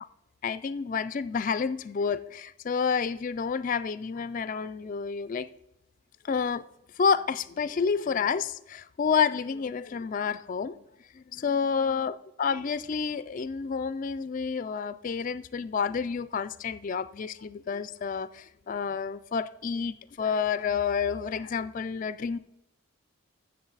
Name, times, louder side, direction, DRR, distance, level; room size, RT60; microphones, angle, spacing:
voice 1, 0.4-5.5 6.2-6.6 7.0-10.8 11.1-22.4, left 6 dB, 40° left, 14 dB, 0.3 m, -29 dB
15.5 x 6.5 x 4.0 m, 0.87 s
head